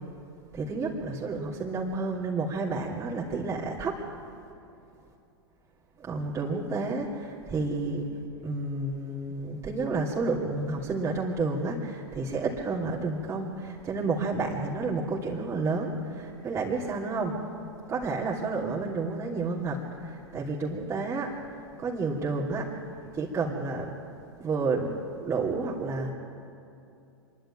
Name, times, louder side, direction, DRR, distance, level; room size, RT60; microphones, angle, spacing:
voice 1, 0.5-4.0 6.0-8.1 8.4-17.4 17.9-21.4 21.8-22.7 23.1-24.0 24.4-24.9 25.2-26.1, right 3 dB, 20° right, -5 dB, 2.9 m, -30 dB
26.0 x 12.0 x 8.9 m, 2.6 s
figure-of-eight pair, 100°, 14 cm